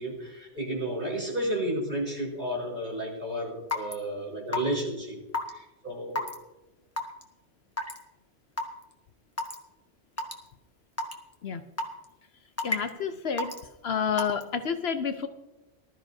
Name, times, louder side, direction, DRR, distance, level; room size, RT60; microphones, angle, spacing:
voice 1, 0.0-5.2 5.5-6.3, right 1 dB, 45° right, -4 dB, 4.6 m, -32 dB
Raindrop / Water tap faucet / Drip, 3.7-3.9 4.5-4.8 5.3-5.5 6.2-6.3 7.0-7.2 7.8-8.0 8.6-8.7 9.4-9.6 10.2-10.3 11.0-11.1 11.8-12.1 12.6-12.9 13.4-13.6 14.2-14.4, left 2 dB, 15° left, 1.2 m, -29 dB
voice 2, 12.6-13.5 13.8-15.3, left 7 dB, 65° left, 9 dB, 0.9 m, -29 dB
19.0 x 13.0 x 2.7 m, 1.0 s
omnidirectional pair, 1.2 m